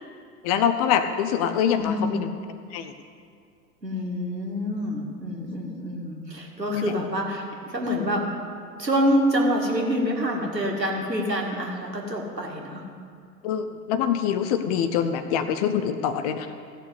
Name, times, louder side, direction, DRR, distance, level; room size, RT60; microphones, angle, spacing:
voice 1, 0.4-2.3 2.7-2.9 6.7-6.9 13.4-16.5, left 8 dB, 25° left, 9 dB, 0.4 m, -24 dB
voice 2, 1.8-2.2 3.8-8.3 8.8-12.8, equal, 90° right, 0 dB, 2.2 m, -26 dB
14.5 x 6.5 x 8.3 m, 2.2 s
figure-of-eight pair, 95°, 49 cm